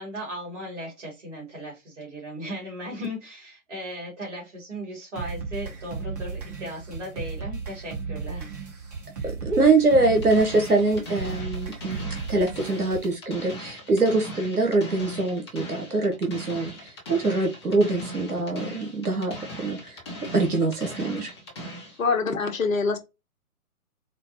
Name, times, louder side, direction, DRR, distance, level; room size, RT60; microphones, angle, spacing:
voice 1, 0.0-8.7, equal, 50° right, 2.0 m, -37 dB
sound 1, 5.2-13.1, right 5 dB, 30° right, 0.9 m, -35 dB
voice 2, 9.4-12.0 12.3-20.0 20.3-21.3, right 3 dB, 85° right, 1.0 m, -23 dB
sound 2, 10.0-22.0, equal, 20° left, 0.6 m, -39 dB
voice 3, 22.0-23.0, left 4 dB, 65° left, 0.9 m, -24 dB
4.3 x 2.0 x 2.7 m
figure-of-eight pair, 130°, 44 cm